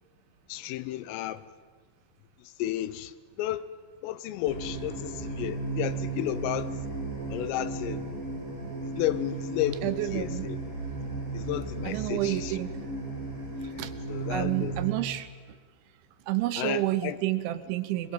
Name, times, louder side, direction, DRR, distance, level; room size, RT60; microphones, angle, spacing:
voice 1, 0.5-1.4 2.6-3.1 3.4-3.7 4.0-6.7 7.3-8.0 9.0-10.6 11.3-12.6 13.8-14.7 16.6-17.2, left 13 dB, 85° left, 3.5 m, -32 dB
sound 1, 4.4-14.9, right 3 dB, 15° left, 7.3 m, -35 dB
voice 2, 9.8-10.5 11.8-12.7 13.8-13.9 14.3-15.3 16.3-18.1, right 15 dB, 75° right, 3.1 m, -29 dB
23.5 x 21.5 x 9.1 m
omnidirectional pair, 5.7 m